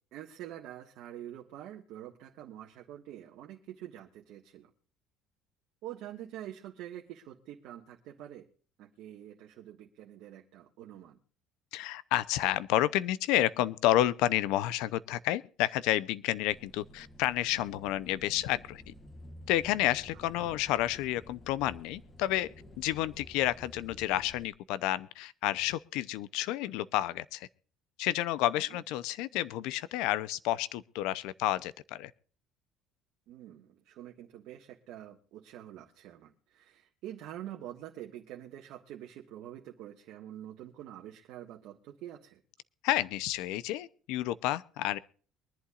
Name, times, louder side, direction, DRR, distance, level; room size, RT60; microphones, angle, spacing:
voice 1, 0.1-4.7 5.8-8.5 8.8-11.2 20.4-20.6 28.5-28.8 33.3-42.4, right 12 dB, 55° right, 1.6 m, -46 dB
voice 2, 11.7-18.9 19.5-22.5 22.8-27.5 28.0-32.1 42.8-45.0, left 14 dB, 70° left, 0.7 m, -30 dB
sound 1, 16.5-24.5, left 1 dB, 15° left, 1.2 m, -52 dB
23.5 x 11.5 x 2.5 m
cardioid pair, 175°, 0 cm